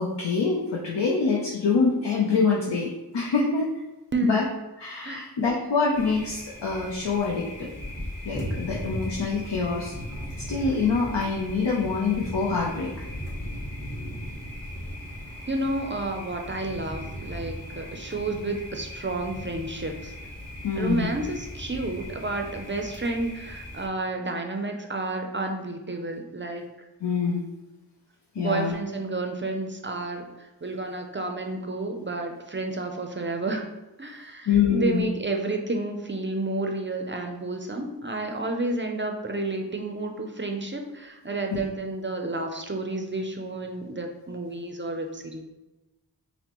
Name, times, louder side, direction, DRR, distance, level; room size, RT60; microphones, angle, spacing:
voice 1, 0.0-3.6 4.2-4.4 4.8-7.7 8.2-9.9 10.5-12.9 20.6-21.1 27.0-27.4 28.3-28.7 34.5-35.0 41.5-41.6, left 5 dB, 75° left, -3 dB, 0.7 m, -25 dB
voice 2, 4.1-4.4 5.0-5.2 15.5-20.1 20.8-26.9 28.4-33.7 34.0-45.4, right 2 dB, 30° right, 3 dB, 0.5 m, -31 dB
Thunder, 5.9-23.9, equal, 35° left, 1.4 m, -37 dB
5.8 x 2.1 x 3.0 m, 1.1 s
wide cardioid pair, 65°, 43 cm